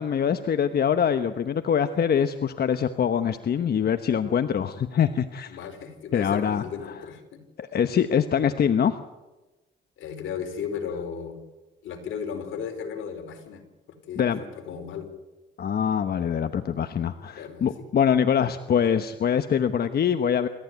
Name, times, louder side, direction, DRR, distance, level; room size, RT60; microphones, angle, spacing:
voice 1, 0.0-5.6 6.1-6.6 7.6-8.9 14.2-14.4 15.6-20.5, left 8 dB, 50° left, 9 dB, 1.1 m, -24 dB
voice 2, 5.5-7.4 10.0-11.4 11.8-13.6 14.1-15.1 17.3-17.7, left 7 dB, 80° left, 5 dB, 4.4 m, -35 dB
28.0 x 14.5 x 9.3 m, 1.1 s
cardioid pair, 90°, 20 cm